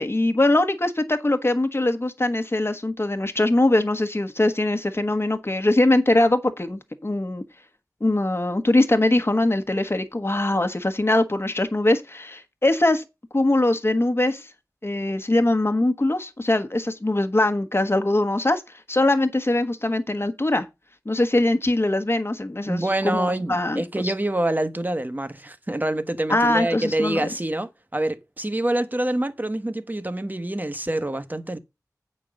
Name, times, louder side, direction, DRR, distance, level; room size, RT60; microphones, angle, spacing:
voice 1, 0.0-7.4 8.0-13.0 13.3-14.5 14.8-18.6 18.9-20.7 21.0-24.1 26.3-27.3, left 2 dB, 40° left, 1.4 m, -22 dB
voice 2, 22.7-31.6, right 1 dB, 25° right, 1.1 m, -26 dB
8.5 x 5.4 x 6.4 m
wide cardioid pair, 55°, 7 cm